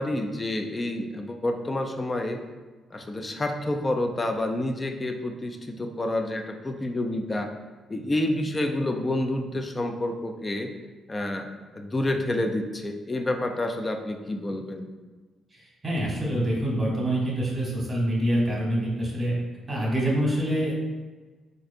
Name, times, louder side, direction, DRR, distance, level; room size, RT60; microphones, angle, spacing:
voice 1, 0.0-2.4 2.9-7.5 7.9-10.7 11.1-11.5 11.7-14.9, left 1 dB, 25° left, 4 dB, 0.3 m, -28 dB
voice 2, 15.5-19.3 19.7-20.7, right 1 dB, 25° right, -4 dB, 1.1 m, -26 dB
3.9 x 2.5 x 2.5 m, 1.3 s
cardioid pair, 90°, 0 cm